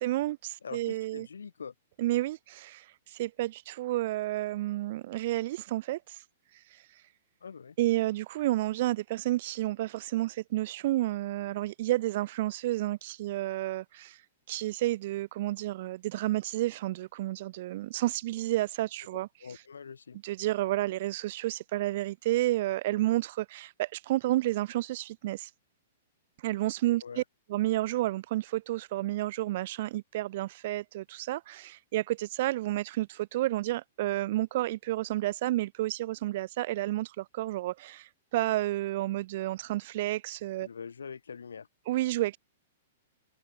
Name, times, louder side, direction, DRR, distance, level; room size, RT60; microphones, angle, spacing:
voice 1, 0.0-1.3 2.0-6.2 6.7-6.8 7.8-14.2 14.5-19.3 20.2-25.5 26.4-27.2 27.5-40.7 41.9-42.4, right 16 dB, 55° right, 2.3 m, -31 dB
voice 2, 0.6-1.7 7.4-7.8 19.4-20.2 27.0-27.2 40.6-41.7, left 6 dB, 90° left, 7.1 m, -43 dB
hypercardioid pair, 125°, 0 cm